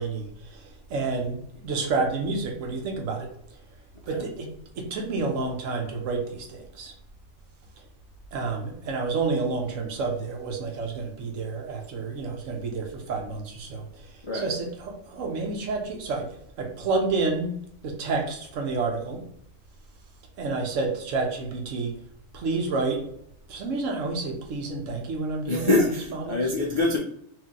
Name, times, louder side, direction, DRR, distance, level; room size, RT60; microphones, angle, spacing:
voice 1, 0.0-3.3 4.1-4.5 4.7-6.9 8.3-14.0 14.3-16.3 16.6-17.6 17.8-19.2 20.4-21.9 22.3-23.0 23.5-25.8 26.2-26.4, right 3 dB, 85° right, 3 dB, 1.1 m, -29 dB
voice 2, 25.5-27.0, left 2 dB, 55° left, -3 dB, 0.3 m, -24 dB
2.9 x 2.6 x 3.7 m, 0.70 s
omnidirectional pair, 1.3 m